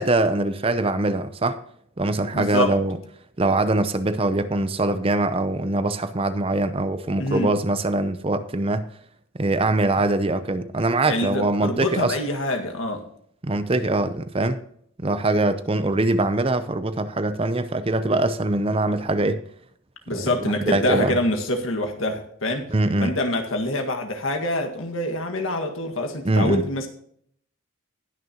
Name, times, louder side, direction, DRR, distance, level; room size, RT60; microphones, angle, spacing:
voice 1, 0.0-1.6 2.0-3.0 3.4-8.9 9.3-12.2 13.4-14.6 15.0-19.4 20.1-21.2 22.7-23.1 26.2-26.7, right 2 dB, 25° right, 0.6 m, -23 dB
voice 2, 2.3-2.8 7.2-7.6 11.1-13.0 20.1-22.7 23.0-26.9, left 1 dB, 75° left, 1.8 m, -25 dB
19.5 x 6.6 x 2.9 m
head